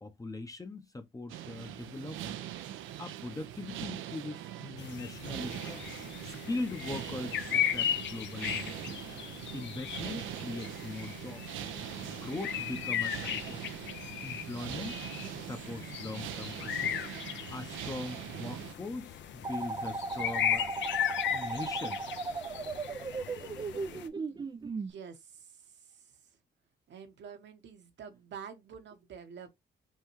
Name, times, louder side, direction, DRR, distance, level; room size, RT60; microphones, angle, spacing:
voice 1, 0.0-2.4 3.0-5.9 6.2-9.0 9.5-11.4 12.1-13.7 14.2-15.0 15.4-17.0 17.3-20.7 21.3-22.0, left 2 dB, 15° left, 0.7 m, -41 dB
sound 1, 1.3-18.7, right 12 dB, 80° right, 0.6 m, -42 dB
sound 2, 4.8-24.1, left 10 dB, 65° left, 0.6 m, -37 dB
sound 3, 19.4-24.9, right 3 dB, 20° right, 0.4 m, -36 dB
voice 2, 24.9-25.5 25.9-26.0 26.9-29.5, right 7 dB, 65° right, 1.1 m, -47 dB
5.6 x 2.3 x 3.0 m
cardioid pair, 90°, 20 cm